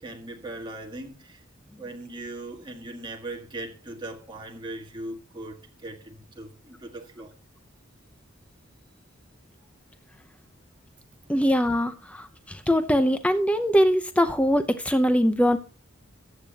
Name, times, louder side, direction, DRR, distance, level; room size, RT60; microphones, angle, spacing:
voice 1, 0.0-1.4 1.8-7.3, right 2 dB, 25° right, 1.7 m, -39 dB
voice 2, 11.3-15.6, equal, 5° left, 0.6 m, -22 dB
14.5 x 8.6 x 2.9 m
head